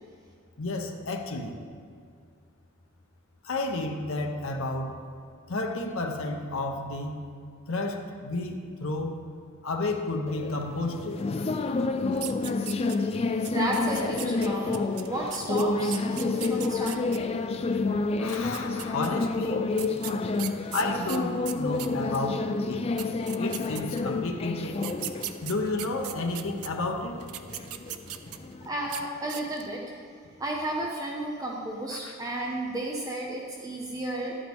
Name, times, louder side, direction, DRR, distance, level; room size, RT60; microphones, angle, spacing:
voice 1, 0.6-1.6 3.4-5.0 5.5-7.3 7.7-9.2 9.6-11.5 18.2-19.7 20.7-22.9 23.4-24.8 25.4-27.2 31.9-32.1, left 2 dB, 65° left, 2 dB, 0.9 m, -31 dB
sound 1, 10.3-28.7, left 3 dB, 25° left, 0.3 m, -29 dB
sound 2, 12.1-13.2 13.4-17.2 18.2-19.1 19.8-22.2 22.7-22.8 23.0-24.2 24.8-26.7 27.2-28.5 28.8-29.0 29.3-29.7, right 12 dB, 85° right, 0.5 m, -38 dB
voice 2, 13.0-17.2 28.6-29.8 30.4-34.4, right 1 dB, 15° right, -2 dB, 0.7 m, -33 dB
11.5 x 8.8 x 3.5 m, 2.2 s
head